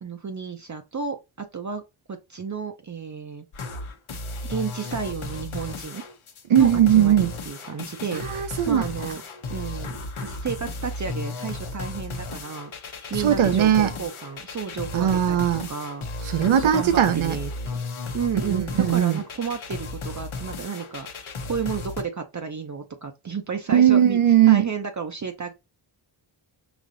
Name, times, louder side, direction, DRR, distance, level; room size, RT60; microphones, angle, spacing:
voice 1, 0.0-1.8 2.1-3.4 4.5-6.0 6.5-8.3 8.7-9.2 9.5-12.7 13.1-15.4 15.7-16.0 16.4-17.5 18.1-21.1 21.4-24.2 24.5-25.5, right 6 dB, 40° right, 0.6 m, -32 dB
sound 1, 3.5-22.0, left 3 dB, 85° left, 0.9 m, -34 dB
voice 2, 6.5-7.3 8.3-8.8 13.2-13.9 14.9-15.7 16.3-17.4 18.5-19.2 23.7-24.6, right 10 dB, 80° right, 0.7 m, -19 dB
5.0 x 2.8 x 2.5 m
wide cardioid pair, 70°, 48 cm